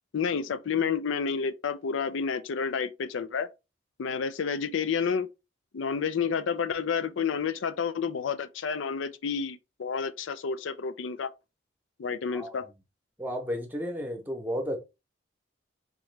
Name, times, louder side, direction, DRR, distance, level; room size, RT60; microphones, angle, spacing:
voice 1, 0.1-3.5 4.0-5.3 5.7-11.3 12.0-12.7, left 6 dB, 85° left, 0.4 m, -30 dB
voice 2, 12.3-12.7 13.2-14.8, equal, 10° right, 0.8 m, -33 dB
3.7 x 3.0 x 3.2 m
head